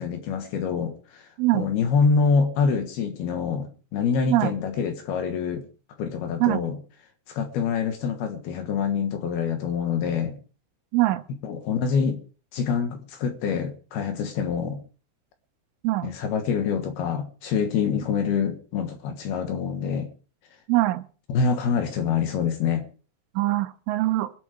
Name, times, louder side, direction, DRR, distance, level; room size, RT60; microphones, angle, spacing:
voice 1, 0.0-5.7 6.0-6.8 7.3-10.4 11.4-12.2 12.5-14.8 16.0-20.1 21.3-22.9, left 6 dB, 65° left, 3.0 m, -26 dB
voice 2, 10.9-11.2 15.8-16.1 20.7-21.0 23.4-24.3, right 17 dB, 85° right, 3.3 m, -22 dB
23.5 x 8.4 x 5.0 m
omnidirectional pair, 5.5 m